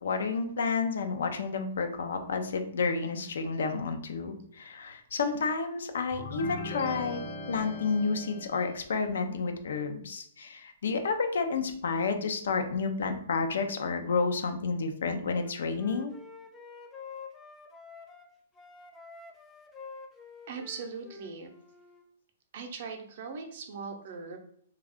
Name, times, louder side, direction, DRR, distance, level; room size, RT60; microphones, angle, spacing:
voice 1, 0.0-7.2 7.5-16.1, left 4 dB, 75° left, 6 dB, 0.5 m, -30 dB
sound 1, 6.1-8.9, left 1 dB, 45° left, 0.8 m, -39 dB
Wind instrument woodwind instrument, 15.4-18.3 18.6-22.1, left 5 dB, 10° left, 0.4 m, -48 dB
voice 2, 20.5-21.5 22.5-24.4, right 5 dB, 55° right, 5 dB, 0.6 m, -40 dB
2.5 x 2.3 x 3.4 m, 0.64 s
hypercardioid pair, 140°, 0 cm